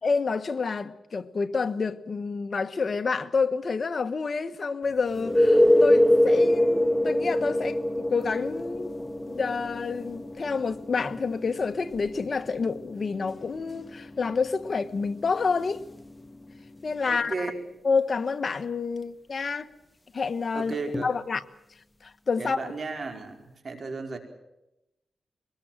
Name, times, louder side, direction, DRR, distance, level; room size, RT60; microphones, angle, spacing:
voice 1, 0.0-8.9 9.3-15.8 16.8-17.5 17.8-19.7 20.1-20.8 21.0-21.4 22.0-22.6, left 4 dB, 50° left, 1.4 m, -28 dB
sound 1, 5.1-16.7 20.9-21.0, left 1 dB, 20° left, 1.6 m, -25 dB
voice 2, 17.0-17.6 20.5-21.1 22.4-24.2, right 4 dB, 50° right, 4.9 m, -34 dB
24.0 x 20.5 x 7.6 m
cardioid pair, 75°, 0 cm